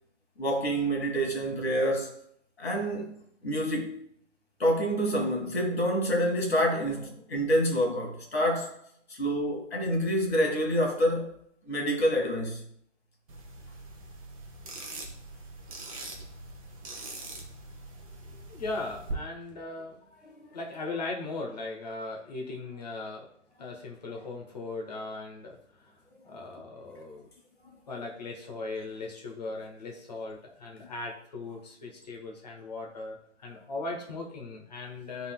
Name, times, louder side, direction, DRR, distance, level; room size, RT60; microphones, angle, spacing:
voice 1, 0.4-2.2 2.6-3.1 3.4-4.0 4.6-8.7 9.1-11.3 11.7-12.6 20.2-20.5, equal, 55° left, 1.9 m, -27 dB
sound 1, 13.3-19.1, right 2 dB, 30° right, 0.9 m, -43 dB
voice 2, 18.3-20.1 20.5-23.3 23.6-25.9 26.2-27.3 27.9-35.3, left 3 dB, 35° left, 1.1 m, -38 dB
11.0 x 4.0 x 2.2 m
figure-of-eight pair, 140°, 37 cm